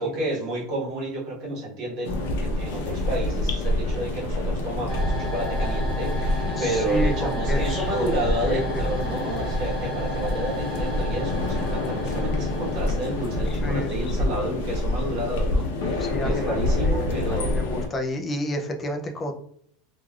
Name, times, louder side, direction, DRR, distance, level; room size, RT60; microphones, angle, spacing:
voice 1, 0.0-17.6, right 1 dB, 40° right, -5 dB, 1.1 m, -31 dB
sound 1, 2.0-17.9, left 2 dB, 75° left, 0.6 m, -27 dB
sound 2, 4.9-13.8, right 2 dB, 5° right, 1.3 m, -35 dB
voice 2, 6.6-8.1 8.4-8.6 13.5-13.9 16.0-19.3, left 1 dB, 15° left, 3 dB, 0.3 m, -30 dB
3.1 x 2.3 x 2.2 m, 0.63 s
supercardioid pair, 175°, 0 cm